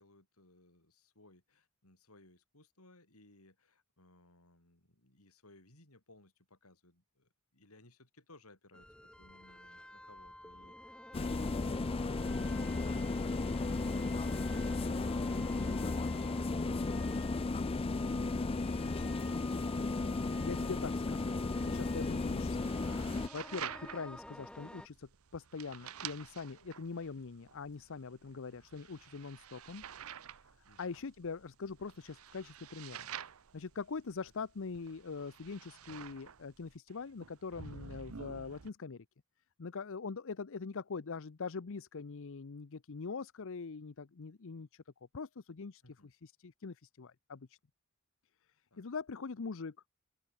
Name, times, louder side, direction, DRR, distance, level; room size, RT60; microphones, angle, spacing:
voice 1, 0.0-8.9 9.2-11.7 30.6-31.1 34.2-34.3 45.8-46.1 48.7-48.9, left 2 dB, 85° left, 7.0 m, -63 dB
sound 1, 8.7-24.9, left 1 dB, 5° left, 0.8 m, -51 dB
sound 2, 11.1-23.3, left 3 dB, 25° left, 0.4 m, -34 dB
voice 2, 20.4-21.3 21.6-22.6 23.3-29.8 30.8-33.1 33.5-39.1 39.6-44.8 45.1-47.6 48.8-49.8, left 4 dB, 65° left, 0.7 m, -43 dB
sound 3, 21.6-38.7, right 8 dB, 75° right, 0.8 m, -50 dB
open air
head